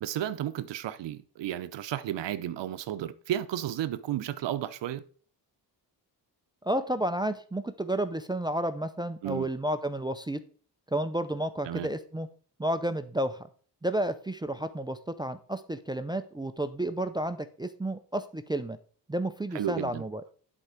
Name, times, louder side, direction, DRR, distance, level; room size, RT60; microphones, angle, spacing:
voice 1, 0.0-5.0 9.2-9.5 11.6-11.9 19.5-20.0, right 12 dB, 85° right, 0.8 m, -33 dB
voice 2, 6.6-10.4 10.9-12.3 12.6-13.4 13.8-18.8 19.1-20.2, right 1 dB, 10° right, 0.5 m, -31 dB
11.0 x 4.4 x 5.0 m
wide cardioid pair, 135°, 42 cm